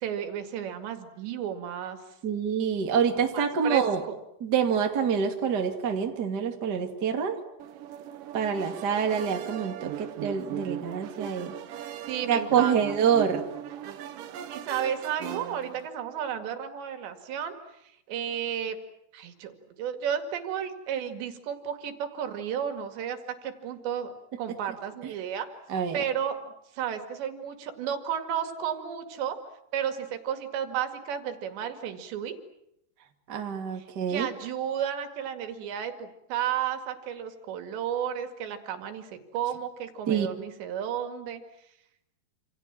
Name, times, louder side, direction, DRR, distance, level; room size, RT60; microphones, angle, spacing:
voice 1, 0.0-2.0 3.3-4.2 12.1-12.8 14.5-17.5 18.1-18.8 19.1-25.5 25.9-26.4 26.7-29.4 29.7-32.4 33.8-41.4, right 9 dB, 85° right, 7 dB, 4.4 m, -33 dB
voice 2, 2.2-4.0 4.4-7.4 8.3-11.5 12.3-13.5 25.7-26.0 33.3-34.3 40.1-40.3, right 7 dB, 30° right, 4 dB, 2.1 m, -26 dB
sound 1, 7.6-15.9, right 10 dB, 65° right, 2.4 m, -38 dB
27.5 x 27.5 x 7.6 m, 0.79 s
omnidirectional pair, 5.0 m